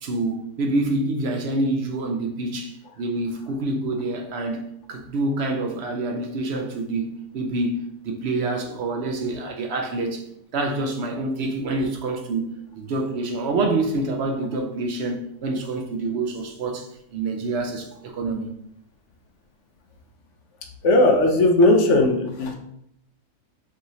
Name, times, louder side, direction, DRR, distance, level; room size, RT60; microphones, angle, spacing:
voice 1, 0.0-10.2 10.5-18.5, right 2 dB, 65° right, 0.7 m, -27 dB
voice 2, 20.8-22.5, left 2 dB, 65° left, 0.8 m, -17 dB
4.7 x 2.9 x 2.7 m
omnidirectional pair, 1.6 m